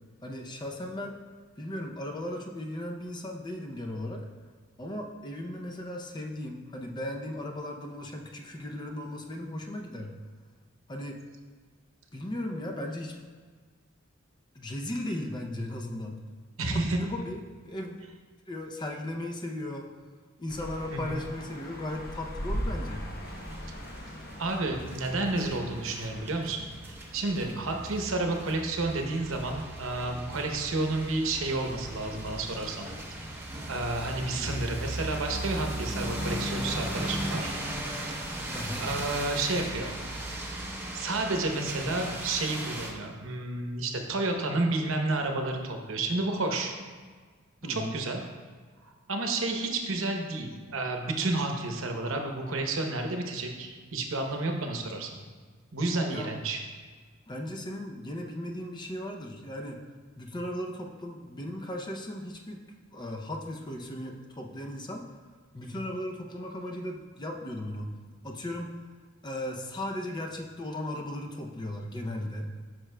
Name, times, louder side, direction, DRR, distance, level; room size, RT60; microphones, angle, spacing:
voice 1, 0.2-1.2 1.6-4.2 4.8-10.1 10.9-11.2 12.1-13.2 14.5-16.2 16.7-18.1 18.5-19.9 20.4-23.1 27.4-27.6 34.4-34.5 38.5-38.9 47.6-48.0 56.1-56.3 57.3-59.8 60.2-62.6 62.9-65.1 65.5-67.9 68.2-68.8 69.2-72.5, left 1 dB, 20° left, 2 dB, 0.5 m, -36 dB
voice 2, 16.6-17.0 20.9-21.2 24.4-33.3 33.7-37.5 37.9-38.2 38.8-39.9 40.9-46.7 47.7-48.2 49.1-55.2 55.7-56.6, right 2 dB, 75° right, 3 dB, 0.8 m, -31 dB
sound 1, 20.5-26.4, equal, 45° left, 0.8 m, -39 dB
sound 2, 23.2-42.9, right 1 dB, 10° right, 0.8 m, -37 dB
9.4 x 6.0 x 2.2 m, 1.5 s
head